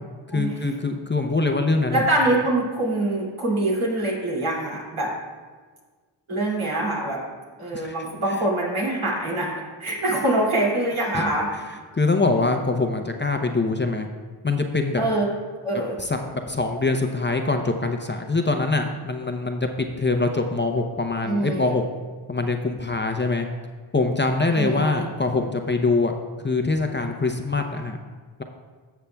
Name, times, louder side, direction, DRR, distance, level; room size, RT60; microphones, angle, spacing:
voice 1, 0.3-2.0 7.7-7.9 11.1-11.3 11.7-14.1 14.4-15.0 16.0-21.8 22.3-23.5 23.9-26.1 26.4-28.0, left 3 dB, 20° left, 4 dB, 0.6 m, -24 dB
voice 2, 1.9-5.1 6.3-7.2 7.6-9.5 9.8-11.5 15.0-15.3 15.6-16.0 21.2-21.7 24.5-25.1, right 1 dB, 75° right, -4 dB, 2.6 m, -24 dB
13.0 x 7.0 x 2.3 m, 1.5 s
cardioid pair, 55°, 50 cm